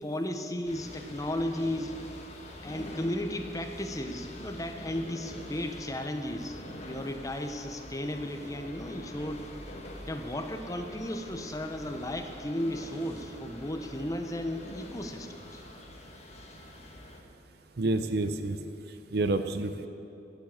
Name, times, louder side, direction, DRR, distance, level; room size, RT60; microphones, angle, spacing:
voice 1, 0.0-2.0 2.6-9.5 10.0-15.6, left 1 dB, 20° left, 6 dB, 0.8 m, -35 dB
sound 1, 0.6-17.2, left 1 dB, 40° left, 1.5 m, -45 dB
voice 2, 17.8-18.6 19.1-19.9, right 2 dB, 60° right, 9 dB, 0.6 m, -28 dB
14.0 x 7.5 x 8.9 m, 2.9 s
head